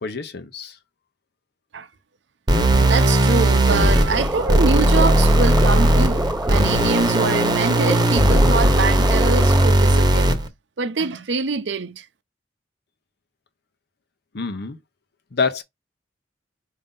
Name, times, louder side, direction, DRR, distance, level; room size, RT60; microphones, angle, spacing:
voice 1, 0.0-0.7 14.3-14.8 15.3-15.6, left 4 dB, 60° left, 0.7 m, -26 dB
sound 1, 2.5-10.5, right 1 dB, 25° right, 0.9 m, -17 dB
voice 2, 2.9-10.3 10.8-12.0, right 4 dB, 75° right, 0.7 m, -24 dB
sound 2, 4.1-9.7, right 1 dB, 10° right, 0.5 m, -28 dB
5.1 x 2.7 x 3.6 m
head